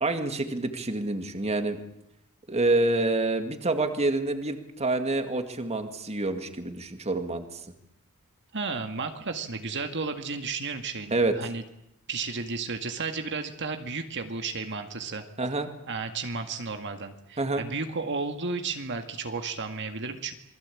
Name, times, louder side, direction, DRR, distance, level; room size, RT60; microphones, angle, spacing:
voice 1, 0.0-1.8 2.5-7.6 11.1-11.3 15.4-15.7 17.4-17.6, right 2 dB, 30° right, 7 dB, 2.1 m, -27 dB
voice 2, 8.5-11.6 12.1-15.2 15.9-20.3, right 4 dB, 55° right, 6 dB, 2.0 m, -33 dB
27.5 x 21.0 x 8.6 m, 0.79 s
head